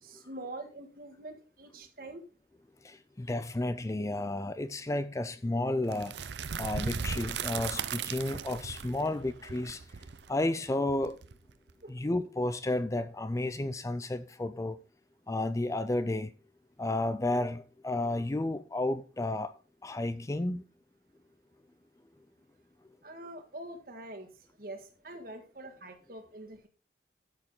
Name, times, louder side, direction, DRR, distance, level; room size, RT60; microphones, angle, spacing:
voice 1, 0.0-2.2 11.8-11.9 23.0-24.3 24.6-26.7, right 1 dB, 55° right, 1.7 m, -45 dB
voice 2, 2.8-6.2 6.6-9.8 10.3-11.2 11.9-14.8 15.3-16.3 16.8-19.5 19.8-20.6, left 2 dB, 15° left, 0.4 m, -32 dB
sound 1, 5.9-11.7, right 6 dB, 75° right, 0.6 m, -37 dB
13.0 x 6.7 x 3.7 m
head